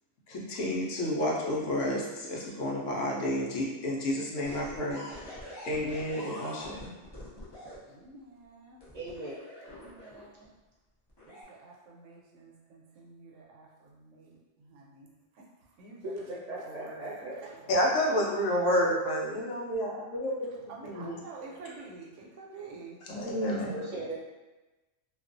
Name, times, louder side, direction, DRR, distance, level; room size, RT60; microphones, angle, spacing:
voice 1, 0.3-5.4 5.6-6.9 17.7-20.5 20.8-21.2 23.1-23.8, left 1 dB, 80° left, -3 dB, 1.0 m, -30 dB
sound 1, 4.4-7.8 8.8-10.4 11.1-11.4, left 1 dB, 40° left, 0.4 m, -45 dB
voice 2, 7.9-8.9 9.7-10.5 11.3-15.4 15.8-16.4 16.6-17.7 18.8-19.3 20.7-23.0 23.9-24.2, right 5 dB, 75° right, -3 dB, 0.9 m, -46 dB
voice 3, 8.9-9.3 16.0-17.4 23.7-24.2, right 1 dB, 45° right, -5 dB, 0.6 m, -38 dB
2.4 x 2.2 x 2.5 m, 1.1 s
omnidirectional pair, 1.3 m